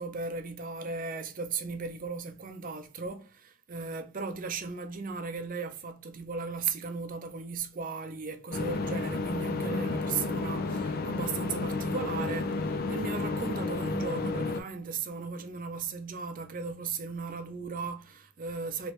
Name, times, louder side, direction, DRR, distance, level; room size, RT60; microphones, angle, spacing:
voice 1, 0.0-18.9, right 4 dB, 40° right, 0.5 m, -36 dB
sound 1, 8.5-14.6, left 3 dB, 45° left, 0.4 m, -31 dB
3.1 x 3.1 x 3.0 m
head